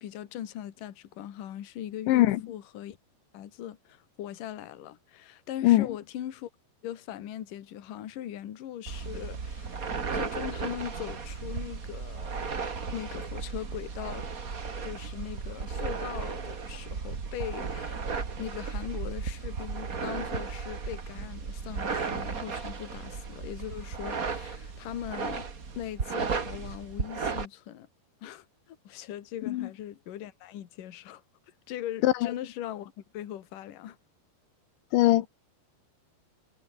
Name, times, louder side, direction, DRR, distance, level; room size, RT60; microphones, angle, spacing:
voice 1, 0.0-3.0 3.3-6.5 6.8-9.8 10.1-12.5 12.9-14.3 14.8-18.0 18.4-25.5 25.7-27.9 28.2-31.2 31.7-34.0, left 11 dB, 55° left, 3.1 m, -40 dB
voice 2, 2.1-2.4 5.6-5.9 29.5-29.7 32.0-32.3 34.9-35.3, left 16 dB, 85° left, 3.5 m, -21 dB
sound 1, 8.9-27.5, right 5 dB, 45° right, 1.0 m, -35 dB
omnidirectional pair, 5.1 m